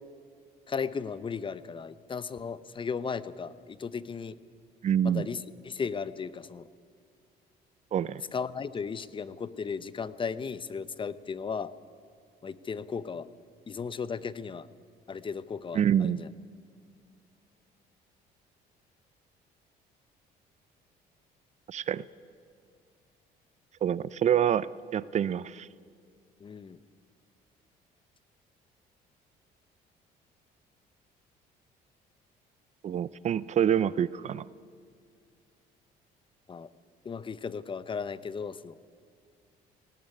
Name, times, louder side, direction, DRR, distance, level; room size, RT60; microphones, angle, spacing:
voice 1, 0.7-4.3 5.0-6.7 8.3-11.7 12.4-13.3 13.7-14.7 15.1-16.3 26.4-26.8 36.5-36.7 37.0-38.8, left 5 dB, 30° left, 16 dB, 0.8 m, -35 dB
voice 2, 4.8-5.2 7.9-8.2 15.7-16.2 21.7-22.0 23.8-25.7 32.8-34.5, right 9 dB, 45° right, 19 dB, 0.5 m, -26 dB
19.0 x 17.5 x 9.7 m, 2.2 s
cardioid pair, 110°, 17 cm